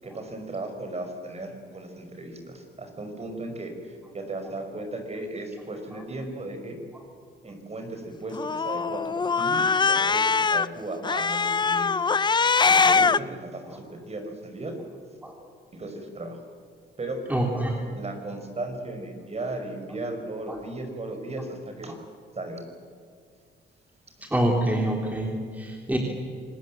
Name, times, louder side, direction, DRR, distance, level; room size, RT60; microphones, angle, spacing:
voice 1, 0.0-6.8 7.4-12.0 12.6-14.8 15.7-16.4 17.0-17.2 17.9-21.9 22.3-22.6 24.2-24.3, right 2 dB, 30° right, 5 dB, 5.4 m, -36 dB
Cat, 8.3-10.7 11.0-13.2, left 5 dB, 20° left, 0.5 m, -22 dB
voice 2, 17.3-17.8 20.5-20.6 24.3-26.0, right 1 dB, 10° right, 0 dB, 3.4 m, -26 dB
26.5 x 19.5 x 7.6 m, 2.2 s
cardioid pair, 90°, 20 cm